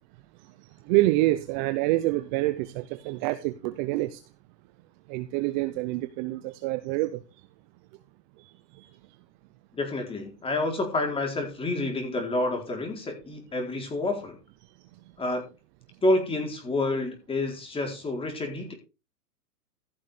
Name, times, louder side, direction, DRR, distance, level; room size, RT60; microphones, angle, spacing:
voice 1, 0.9-4.2 5.1-7.2 8.8-8.9, right 18 dB, 30° right, 0.8 m, -26 dB
voice 2, 9.7-14.4 15.2-15.4 16.0-18.7, left 2 dB, 10° left, 4.1 m, -28 dB
15.5 x 6.4 x 5.0 m
hypercardioid pair, 140°, 48 cm